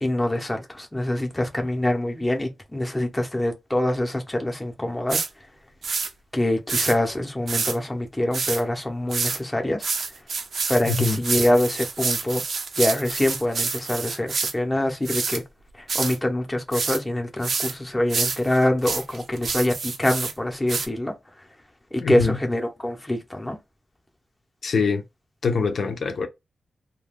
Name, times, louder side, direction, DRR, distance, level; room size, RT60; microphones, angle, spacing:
voice 1, 0.0-5.2 6.3-9.8 10.7-12.4 12.8-15.4 15.9-21.1 21.9-23.6, left 1 dB, 10° left, 0.7 m, -25 dB
sound 1, 5.1-5.3 5.8-6.1 6.7-6.9 7.5-7.8 8.3-8.6 9.1-9.4 9.8-14.5 15.0-15.4 15.9-16.2 16.7-17.0 17.4-17.7 18.1-20.3 20.7-20.9, right 4 dB, 65° right, 0.5 m, -27 dB
voice 2, 10.8-11.2 22.0-22.4 24.6-25.0 25.4-26.3, left 5 dB, 70° left, 0.6 m, -23 dB
2.3 x 2.2 x 3.4 m
wide cardioid pair, 130°, 0 cm